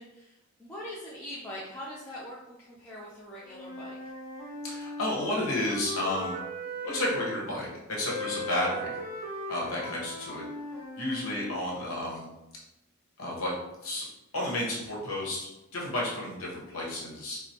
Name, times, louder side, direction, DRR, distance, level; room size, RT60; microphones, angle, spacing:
voice 1, 0.0-4.1, equal, 10° left, -8 dB, 0.4 m, -43 dB
Wind instrument woodwind instrument, 3.4-7.3 8.0-11.5, left 1 dB, 50° left, 1.3 m, -38 dB
voice 2, 4.6-6.3 6.8-9.0 9.5-10.4 11.0-12.2 13.2-13.5 13.8-14.1 14.3-17.4, left 1 dB, 70° left, -4 dB, 1.0 m, -32 dB
4.6 x 2.0 x 2.8 m, 0.94 s
head